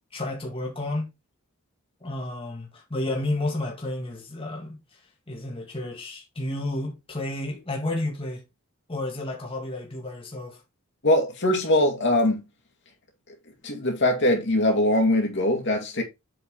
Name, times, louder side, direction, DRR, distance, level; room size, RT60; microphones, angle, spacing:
voice 1, 0.1-1.1 2.0-4.8 5.3-8.4 8.9-10.6, left 1 dB, 25° left, 2.0 m, -31 dB
voice 2, 11.0-12.4 13.6-16.0, left 1 dB, 55° left, 2.2 m, -22 dB
7.9 x 4.7 x 3.7 m
head